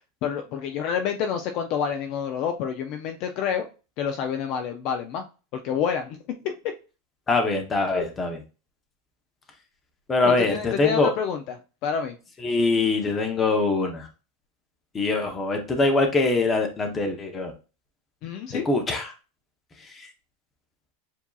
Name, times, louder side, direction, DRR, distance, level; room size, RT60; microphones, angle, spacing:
voice 1, 0.2-3.7 4.0-5.3 5.5-6.2 6.4-6.5 10.2-12.2 18.2-18.7, left 7 dB, 40° left, 6 dB, 0.4 m, -28 dB
voice 2, 7.3-8.4 10.1-11.1 12.4-14.0 14.9-17.5 18.7-19.1, left 3 dB, 15° left, 4 dB, 0.7 m, -23 dB
7.1 x 2.7 x 2.3 m, 0.33 s
supercardioid pair, 170°, 0 cm